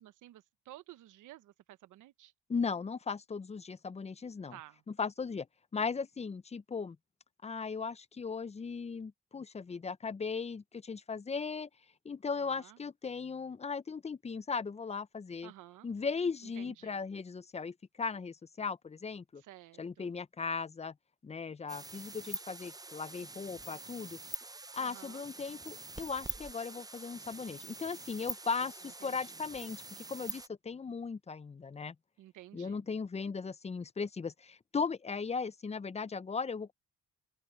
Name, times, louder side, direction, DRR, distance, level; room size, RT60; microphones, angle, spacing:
voice 1, 0.0-2.3 4.5-4.8 12.4-12.8 15.4-15.9 16.4-17.0 19.4-20.1 24.8-25.2 29.0-29.3 32.2-32.8, right 15 dB, 85° right, 1.2 m, -53 dB
voice 2, 2.5-4.6 4.9-5.5 5.7-7.0 7.4-11.7 12.0-15.5 15.8-19.4 19.8-20.9 21.2-24.2 24.7-29.8 30.1-32.0 32.5-36.7, left 5 dB, 20° left, 0.6 m, -37 dB
sound 1, 21.7-30.5, right 3 dB, 10° right, 0.7 m, -45 dB
open air
cardioid pair, 90°, 30 cm